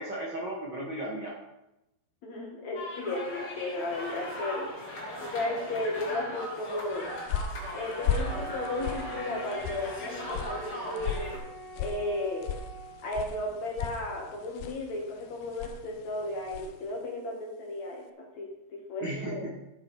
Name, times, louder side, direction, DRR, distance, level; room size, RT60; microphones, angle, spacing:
voice 1, 0.0-1.3 19.0-19.6, right 1 dB, 75° right, -3 dB, 1.0 m, -35 dB
voice 2, 2.2-4.7 5.2-7.1 7.7-11.4 11.8-12.5 13.0-19.4, left 2 dB, 55° left, -1 dB, 2.3 m, -34 dB
sound 1, 2.7-11.4, left 1 dB, 30° left, 2.2 m, -38 dB
sound 2, 6.8-16.9, left 6 dB, 80° left, 2.3 m, -37 dB
Wind instrument woodwind instrument, 8.2-13.1, right 3 dB, ahead, 0.8 m, -44 dB
11.0 x 8.0 x 4.8 m, 0.91 s
omnidirectional pair, 5.0 m